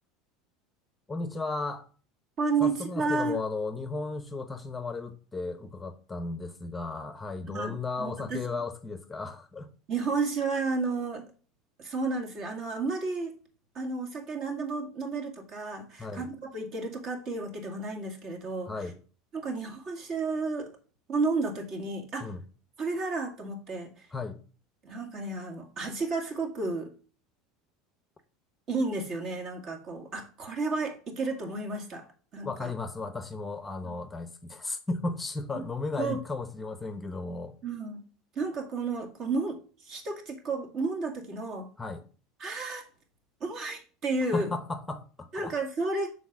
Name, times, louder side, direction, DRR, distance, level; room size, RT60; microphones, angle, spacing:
voice 1, 1.1-1.9 2.6-9.7 16.0-16.3 18.7-19.0 22.2-22.4 24.1-24.4 32.4-37.6 41.8-42.0 44.3-45.5, left 3 dB, 10° left, 0.8 m, -35 dB
voice 2, 2.4-3.4 7.4-8.5 9.9-11.3 11.8-13.3 13.7-18.9 19.3-20.7 21.1-22.3 22.8-24.1 24.8-26.9 28.7-32.1 32.3-32.7 33.8-33.9 35.5-35.7 36.0-36.2 37.6-38.0 38.4-41.7 42.4-42.9 43.4-44.5 45.3-46.1, right 3 dB, 45° right, 2.2 m, -32 dB
7.0 x 4.1 x 6.1 m
supercardioid pair, 125°, 0 cm